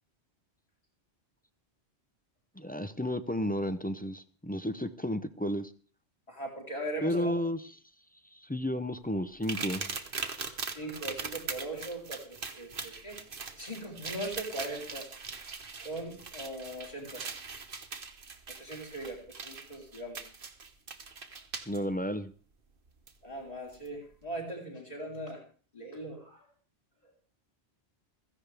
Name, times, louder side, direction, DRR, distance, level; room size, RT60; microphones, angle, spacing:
voice 1, 2.6-5.7 7.0-7.6 8.3-9.9 21.7-22.3, equal, 10° left, 10 dB, 0.4 m, -32 dB
voice 2, 6.3-7.3 10.7-13.2 13.6-15.1 15.5-17.3 18.5-20.2 23.2-25.4 25.7-26.5 27.0-27.1, right 1 dB, 35° left, -1 dB, 4.0 m, -40 dB
sound 1, 9.4-21.8 23.1-23.2 23.7-23.9, right 4 dB, 50° right, 1.3 m, -41 dB
16.0 x 15.0 x 3.4 m, 0.41 s
omnidirectional pair, 1.2 m